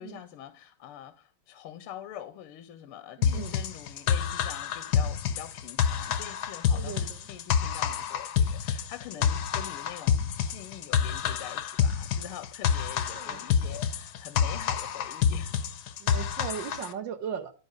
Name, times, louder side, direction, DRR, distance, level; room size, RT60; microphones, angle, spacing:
voice 1, 0.0-15.5, left 11 dB, 85° left, 1.5 m, -44 dB
sound 1, 3.2-16.9, left 7 dB, 65° left, 1.1 m, -28 dB
voice 2, 3.2-3.6 6.7-7.2 9.2-9.3 13.1-13.4 16.0-17.5, right 8 dB, 65° right, 1.3 m, -37 dB
11.5 x 4.2 x 5.0 m
omnidirectional pair, 2.4 m